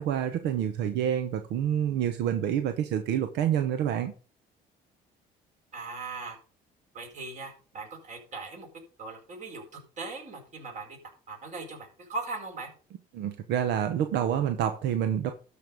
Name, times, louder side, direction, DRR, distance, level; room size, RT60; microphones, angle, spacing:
voice 1, 0.0-4.1 13.1-15.3, right 9 dB, 85° right, 1.0 m, -27 dB
voice 2, 5.7-6.4 6.9-8.7 9.0-9.6 10.0-11.0 11.3-12.7, right 3 dB, 45° right, 4.5 m, -39 dB
12.5 x 5.3 x 5.2 m
cardioid pair, 110°, 17 cm